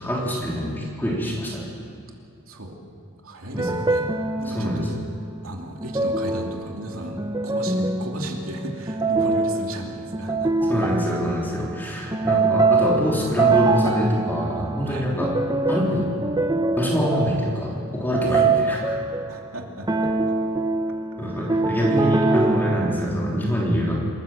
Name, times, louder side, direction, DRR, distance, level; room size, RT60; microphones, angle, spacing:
voice 1, 0.0-1.7 3.5-3.7 4.5-4.9 10.7-15.3 15.7-16.1 16.8-19.0 21.2-24.0, equal, 10° left, -4 dB, 3.5 m, -25 dB
voice 2, 2.5-2.8 3.2-4.1 4.4-5.0 5.4-10.5 14.8-15.1 18.2-18.4 19.3-20.1 21.3-21.6, right 1 dB, 90° right, 1 dB, 2.7 m, -35 dB
sound 1, 3.6-5.0 5.8-11.6 12.1-19.5 19.9-23.1, right 3 dB, 20° right, 0.9 m, -24 dB
27.0 x 14.0 x 7.4 m, 2.5 s
head